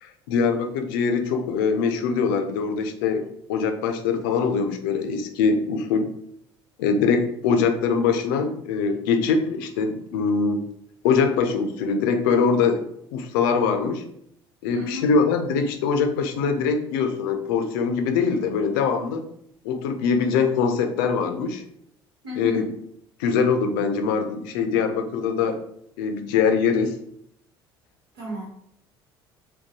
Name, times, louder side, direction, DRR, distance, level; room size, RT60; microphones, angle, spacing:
voice 1, 0.0-6.1 6.8-10.6 11.0-14.0 14.6-19.3 19.6-21.6 22.4-22.7 23.2-25.6 26.0-26.9, left 5 dB, 65° left, 7 dB, 0.5 m, -23 dB
voice 2, 14.7-15.1 22.2-22.6 28.1-28.5, equal, 75° right, -3 dB, 1.2 m, -33 dB
3.6 x 2.2 x 2.8 m, 0.70 s
figure-of-eight pair, 60°, 13 cm